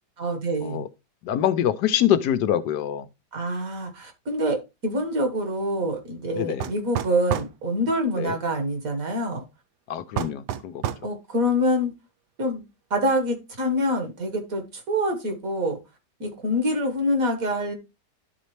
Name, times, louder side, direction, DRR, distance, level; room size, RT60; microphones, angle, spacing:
voice 1, 0.2-0.8 3.3-4.6 4.8-9.4 11.0-11.9 12.4-12.6 12.9-15.8 16.2-17.8, equal, 55° right, 1.9 m, -26 dB
voice 2, 1.2-3.1 6.3-6.6 8.2-8.4 9.9-10.8, left 10 dB, 80° left, 1.2 m, -24 dB
sound 1, 6.6-7.6 10.2-11.1, right 10 dB, 80° right, 1.2 m, -29 dB
12.0 x 4.1 x 3.1 m
omnidirectional pair, 1.8 m